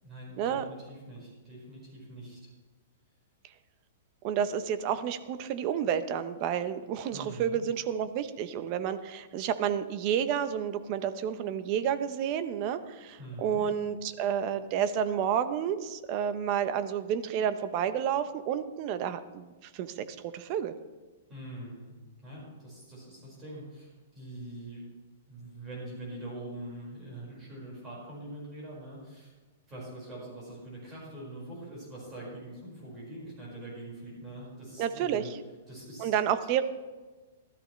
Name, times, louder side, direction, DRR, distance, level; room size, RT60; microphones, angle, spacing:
voice 1, 0.0-2.5 7.1-7.6 13.2-13.6 21.3-21.9 22.2-24.9 25.3-29.3 29.7-35.3 35.7-36.1 36.4-36.5, right 1 dB, 15° right, -5 dB, 4.8 m, -43 dB
voice 2, 4.2-20.7 34.8-35.2 36.0-36.6, right 9 dB, 30° right, 11 dB, 0.7 m, -30 dB
15.5 x 13.0 x 3.2 m, 1.3 s
hypercardioid pair, 170°, 0 cm